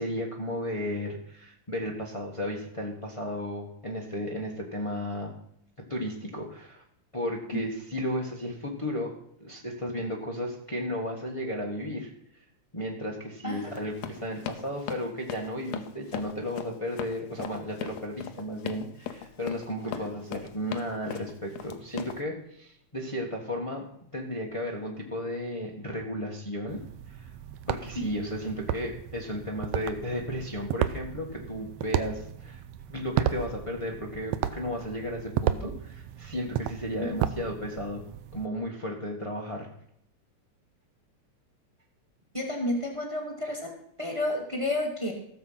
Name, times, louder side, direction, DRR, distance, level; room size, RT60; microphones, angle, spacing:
voice 1, 0.0-5.3 5.9-6.8 7.1-9.1 9.4-12.1 12.7-23.8 24.1-26.8 27.1-27.3 27.7-32.6 32.9-38.0 38.3-39.7, equal, 20° left, -2 dB, 0.8 m, -34 dB
voice 2, 13.4-13.7 19.9-20.0 28.0-28.1 42.3-45.1, left 1 dB, 10° right, 3 dB, 1.7 m, -31 dB
Run, 13.7-22.2, left 9 dB, 70° left, 2.0 m, -38 dB
sound 1, 26.7-38.5, right 10 dB, 75° right, 1.8 m, -34 dB
16.5 x 7.2 x 5.7 m, 0.71 s
omnidirectional pair, 3.4 m